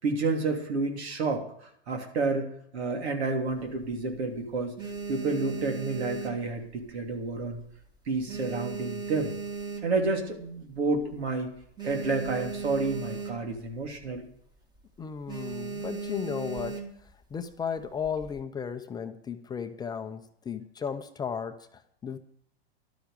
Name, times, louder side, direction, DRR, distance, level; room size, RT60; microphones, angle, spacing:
voice 1, 0.0-4.7 5.1-7.6 8.1-9.3 9.8-11.5 11.8-14.2, right 3 dB, 85° right, 3 dB, 3.3 m, -30 dB
sound 1, 3.5-4.2 4.6-7.1 7.4-7.8 8.0-10.3 10.8-10.9 11.0-11.2 11.5-13.7 14.0-14.2 14.6-14.8 15.3-17.1 17.8-18.4, right 4 dB, 15° right, 1.5 m, -37 dB
voice 2, 15.0-16.8 17.3-22.2, left 7 dB, 10° left, 7 dB, 0.5 m, -35 dB
13.0 x 12.0 x 5.1 m, 0.68 s
hypercardioid pair, 135°, 32 cm